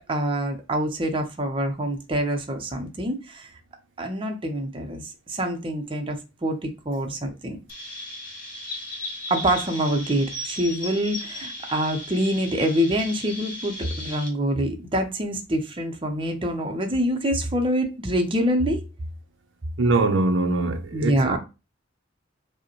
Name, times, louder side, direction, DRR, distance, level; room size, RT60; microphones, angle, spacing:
voice 1, 0.1-3.5 4.0-7.6 9.3-18.8 20.9-21.4, equal, 30° right, 0.6 m, -26 dB
Chirp tweet, 7.7-14.3, left 1 dB, 50° left, 1.4 m, -36 dB
voice 2, 19.8-21.4, right 2 dB, 80° right, 0.6 m, -22 dB
4.8 x 2.1 x 3.0 m
head